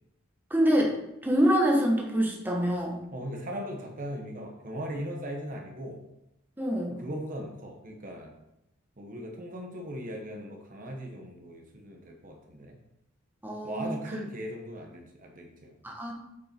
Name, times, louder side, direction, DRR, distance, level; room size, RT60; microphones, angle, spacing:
voice 1, 0.5-0.9 1.2-3.0 6.6-7.0 13.4-13.9 15.8-16.1, equal, 10° right, -1 dB, 1.2 m, -25 dB
voice 2, 3.1-6.0 7.0-8.3 9.0-12.8 13.6-15.7, equal, 40° right, 2 dB, 1.1 m, -39 dB
8.3 x 5.3 x 4.5 m, 0.87 s
head